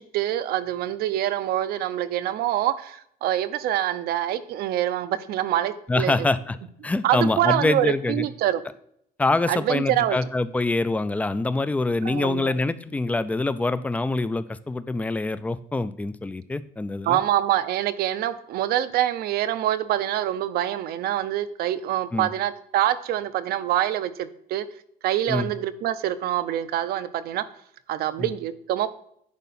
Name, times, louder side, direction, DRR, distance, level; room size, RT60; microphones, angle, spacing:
voice 1, 0.0-6.3 7.0-8.6 9.5-10.2 12.0-12.5 17.1-24.7 25.0-27.4 27.9-28.9, right 12 dB, 75° right, 0.6 m, -25 dB
voice 2, 5.9-6.6 6.8-8.3 9.2-17.2 22.1-22.3 25.3-25.5 28.2-28.3, left 2 dB, 10° left, 0.3 m, -25 dB
10.5 x 4.6 x 4.2 m
cardioid pair, 145°, 16 cm